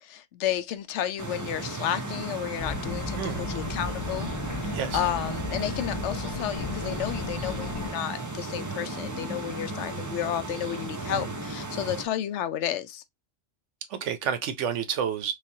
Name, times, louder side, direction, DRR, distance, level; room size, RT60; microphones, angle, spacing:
voice 1, 0.0-4.3 4.6-13.0, left 10 dB, 80° left, 0.9 m, -32 dB
sound 1, 1.2-12.1, right 3 dB, 25° right, 0.4 m, -35 dB
sound 2, 2.6-7.9, left 4 dB, 40° left, 0.4 m, -35 dB
voice 2, 3.1-3.4 4.7-5.1 11.0-11.3 13.9-15.3, right 8 dB, 85° right, 1.0 m, -30 dB
3.3 x 3.2 x 2.7 m
omnidirectional pair, 1.2 m